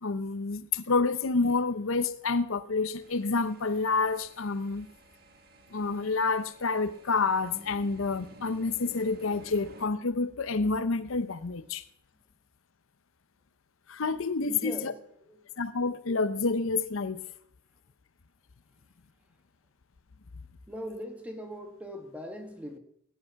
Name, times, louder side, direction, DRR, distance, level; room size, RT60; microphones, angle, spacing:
voice 1, 0.0-4.9 5.7-11.8 13.9-14.9 15.6-17.2, left 4 dB, 75° left, 0.7 m, -28 dB
sound 1, 3.0-9.9, right 1 dB, 45° right, 1.6 m, -53 dB
voice 2, 14.4-15.5 20.7-22.8, equal, 5° right, 1.7 m, -41 dB
17.5 x 10.5 x 5.8 m
head